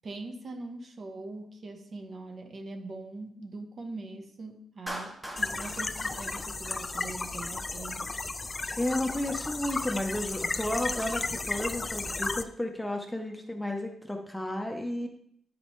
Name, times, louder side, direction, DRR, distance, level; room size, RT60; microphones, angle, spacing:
voice 1, 0.0-8.1, right 2 dB, 45° right, 5 dB, 0.9 m, -42 dB
Clapping, 4.9-7.2, equal, 15° right, 1.0 m, -41 dB
sound 1, 5.4-12.4, left 3 dB, 25° left, 0.3 m, -34 dB
voice 2, 8.8-15.1, left 1 dB, 5° left, 3 dB, 0.7 m, -32 dB
9.7 x 4.2 x 3.1 m, 0.68 s
cardioid pair, 130°, 0 cm